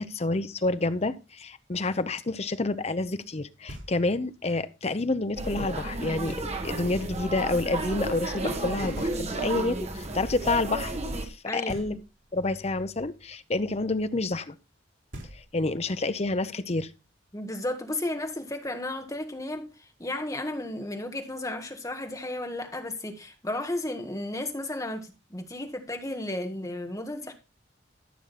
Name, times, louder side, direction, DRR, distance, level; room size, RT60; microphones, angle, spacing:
voice 1, 0.0-11.0 11.5-12.0 12.3-14.6 15.3-16.9, left 2 dB, 35° left, 0.7 m, -29 dB
Knock, 3.7-4.3 6.3-6.9 8.9-9.7 11.7-12.4 14.7-14.8 15.1-15.9, equal, 80° right, 4.0 m, -44 dB
sound 1, 5.4-11.3, right 2 dB, 35° right, 1.7 m, -32 dB
voice 2, 11.4-11.9 17.3-19.7 20.0-27.3, left 1 dB, 15° left, 1.6 m, -33 dB
13.5 x 6.4 x 4.2 m
head